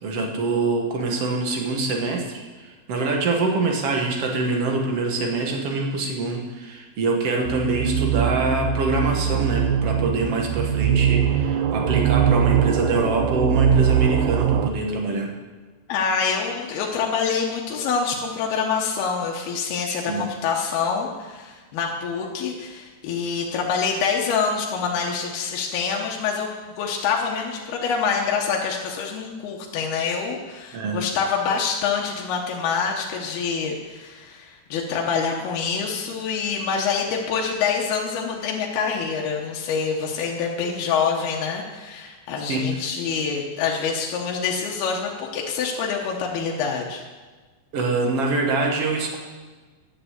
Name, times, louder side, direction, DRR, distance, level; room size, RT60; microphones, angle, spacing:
voice 1, 0.0-15.3 20.1-20.3 30.7-31.0 42.5-42.7 47.7-49.2, right 3 dB, 55° right, 2 dB, 1.9 m, -24 dB
sound 1, 7.5-14.7, right 9 dB, 85° right, 1.9 m, -21 dB
voice 2, 15.9-26.5 26.8-47.0, left 6 dB, 80° left, -1 dB, 3.1 m, -26 dB
11.0 x 6.8 x 8.1 m, 1.4 s
omnidirectional pair, 4.5 m